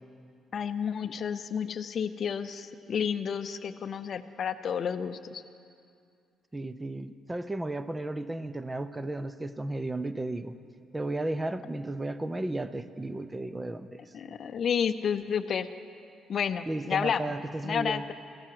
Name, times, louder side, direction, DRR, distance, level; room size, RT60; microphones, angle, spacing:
voice 1, 0.5-5.4 14.1-15.7 16.3-17.3 17.6-18.1, left 7 dB, 55° left, 11 dB, 0.5 m, -31 dB
voice 2, 6.5-10.6 10.9-14.0 16.7-18.1, right 2 dB, 15° right, 13 dB, 0.6 m, -34 dB
14.5 x 11.0 x 7.6 m, 2.4 s
cardioid pair, 90°, 0 cm